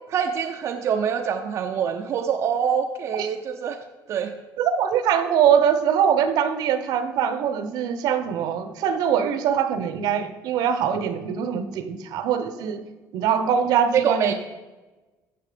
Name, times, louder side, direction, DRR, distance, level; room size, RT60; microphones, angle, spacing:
voice 1, 0.1-3.8 4.1-4.3 13.9-14.3, right 7 dB, 45° right, 4 dB, 0.6 m, -25 dB
voice 2, 4.6-12.8 13.1-14.3, right 8 dB, 65° right, 10 dB, 1.0 m, -22 dB
14.5 x 5.8 x 5.1 m, 1.2 s
cardioid pair, 155°, 7 cm